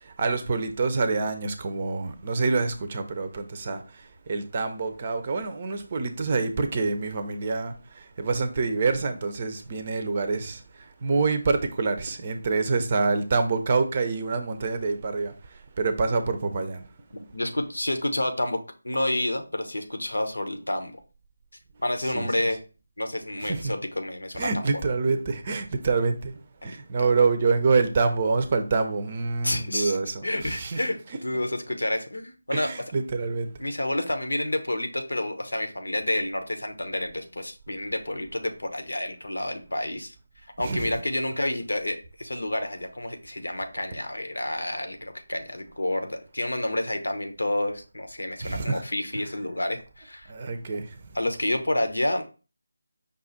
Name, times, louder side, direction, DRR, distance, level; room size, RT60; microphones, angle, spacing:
voice 1, 0.0-16.8 22.1-22.3 23.4-23.7 24.4-30.8 32.5-33.5 40.6-41.0 48.4-48.8 50.3-51.0, right 4 dB, 35° right, 0.6 m, -26 dB
voice 2, 17.1-18.6 18.8-20.9 21.8-22.6 23.0-24.8 26.6-27.1 29.4-32.7 33.6-40.1 40.6-50.3 51.1-52.2, left 1 dB, 85° left, 0.9 m, -29 dB
5.4 x 2.5 x 3.9 m
figure-of-eight pair, 165°, 0 cm